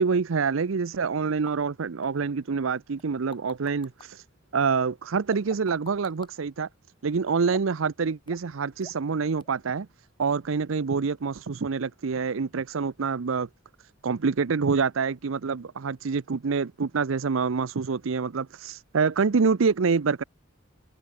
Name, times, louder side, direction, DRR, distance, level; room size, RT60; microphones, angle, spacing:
voice 1, 0.0-4.2 4.5-6.7 7.0-9.9 10.2-13.5 14.0-20.2, right 5 dB, 80° right, 0.6 m, -26 dB
sound 1, 1.5-1.6 2.0-2.1 3.0-4.1 5.3-6.3 7.5-7.9 8.3-8.5 8.8-9.1 9.4-9.5, left 3 dB, 25° left, 4.4 m, -46 dB
open air
head